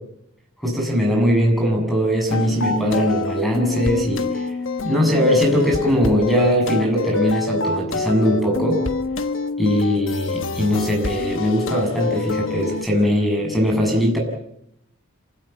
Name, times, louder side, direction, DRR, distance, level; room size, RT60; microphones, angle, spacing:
voice 1, 0.6-4.5 4.8-8.8 9.6-14.2, equal, ahead, 1 dB, 7.0 m, -20 dB
sound 1, 2.3-12.9, left 3 dB, 65° left, 1.3 m, -26 dB
27.5 x 16.5 x 8.6 m, 0.77 s
head